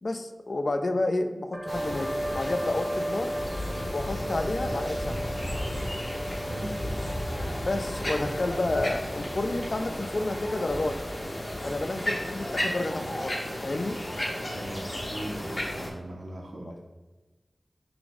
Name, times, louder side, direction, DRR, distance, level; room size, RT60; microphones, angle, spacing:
voice 1, 0.0-3.3 3.9-5.3 7.6-11.0 11.6-13.4 13.6-14.0, left 2 dB, 65° left, 7 dB, 0.3 m, -30 dB
sound 1, 1.5-12.8, right 1 dB, 10° right, 0.7 m, -38 dB
sound 2, 1.7-15.9, left 1 dB, 45° left, 0.9 m, -33 dB
voice 2, 14.5-16.8, right 1 dB, 80° right, 0 dB, 0.6 m, -39 dB
6.0 x 2.0 x 3.5 m, 1.1 s
wide cardioid pair, 60°, 0 cm